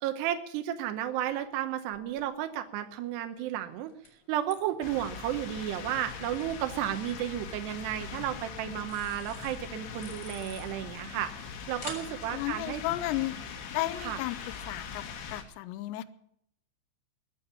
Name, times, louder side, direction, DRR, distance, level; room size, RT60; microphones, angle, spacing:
voice 1, 0.0-3.9 4.3-12.8 14.0-14.2, right 11 dB, 75° right, 7 dB, 2.7 m, -33 dB
sound 1, 1.0-15.1, left 2 dB, 25° left, 4.3 m, -53 dB
sound 2, 4.8-15.4, left 6 dB, 60° left, 3.4 m, -42 dB
voice 2, 12.3-13.4 13.7-14.4 14.7-15.0 15.3-16.0, left 16 dB, 80° left, 12 dB, 2.6 m, -33 dB
21.5 x 8.5 x 6.9 m, 0.72 s
omnidirectional pair, 5.7 m